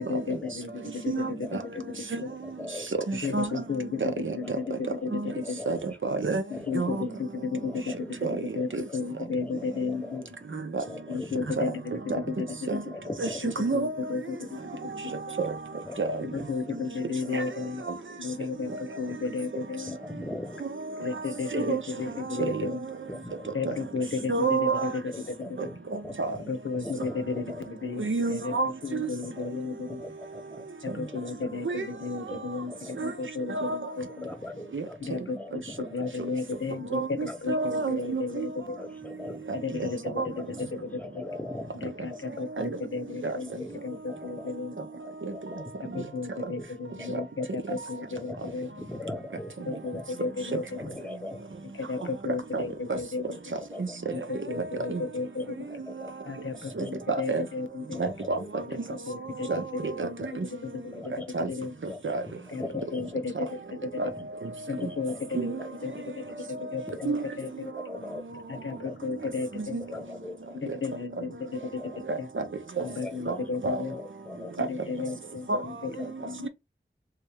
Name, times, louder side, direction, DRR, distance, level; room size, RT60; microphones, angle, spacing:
voice 1, 0.0-2.3 3.2-5.6 6.5-8.1 8.5-10.2 11.1-12.7 13.7-14.6 15.0-15.1 16.2-17.8 18.2-20.0 21.0-22.9 23.5-25.6 26.4-30.0 30.8-34.3 35.0-38.8 39.5-41.2 41.7-44.8 45.8-48.7 49.6-50.8 51.8-53.4 54.1-55.7 56.3-58.0 58.7-61.1 61.5-61.7 62.5-62.6 62.9-63.5 63.8-63.9 64.7-67.7 68.5-69.8 70.5-71.8 72.2-72.3 72.8-74.0 74.6-76.5, left 4 dB, 85° left, 0.7 m, -34 dB
voice 2, 2.4-2.9 4.4-4.7 5.4-5.7 6.5-7.0 7.5-8.1 8.9-9.0 9.4-10.3 10.8-11.5 12.2-12.3 12.9-13.6 15.8-16.0 16.4-16.5 19.9-20.7 23.1-23.5 25.1-26.5 26.8-27.6 29.4-29.5 29.9-30.7 31.0-31.5 32.0-32.1 32.3-32.9 34.2-36.2 37.2-37.4 38.8-39.6 40.3-41.9 43.5-44.5 44.9-45.0 45.2-45.7 46.6-46.7 46.9-47.5 48.2-50.0 50.8-51.4 53.2-53.3 53.6-53.9 55.7-56.1 56.6-57.1 57.9-58.5 59.4-59.5 60.9-61.3 61.9-62.0 62.3-63.2 64.2-64.3 64.8-65.3 65.6-66.1 66.9-67.1 67.8-68.4 68.7-69.0 69.8-70.8 71.6-72.0 72.8-73.2 73.9-74.7 75.1-75.2, left 2 dB, 10° left, 0.8 m, -42 dB
voice 3, 3.1-3.5 4.2-4.3 5.1-5.3 5.7-6.4 6.7-7.0 8.2-8.4 8.7-8.8 10.7-10.8 11.6-11.7 12.7-12.8 13.2-13.3 13.6-13.9 15.4-15.5 16.0-16.3 17.3-17.4 21.5-21.8 22.4-22.6 23.7-23.8 24.3-24.9 26.2-26.3 28.0-29.1 31.7-31.9 33.0-33.1 33.5-33.8 34.7-34.8 36.9-38.5 39.8-39.9 40.2-40.3 42.6-42.7 43.2-43.3 52.5-52.6 52.9-53.0 53.8-54.1 54.9-55.0 56.8-57.4 58.0-58.4 59.5-59.6 60.0-60.1 60.4-60.5 61.3-61.5 62.0-62.2 64.8-64.9 65.3-65.6 67.1-67.2 69.7-69.8 72.1-72.4 73.3-73.4 73.6-73.8 75.5-75.6, right 3 dB, 75° right, 0.7 m, -28 dB
3.2 x 2.8 x 3.3 m
wide cardioid pair, 50°, 20 cm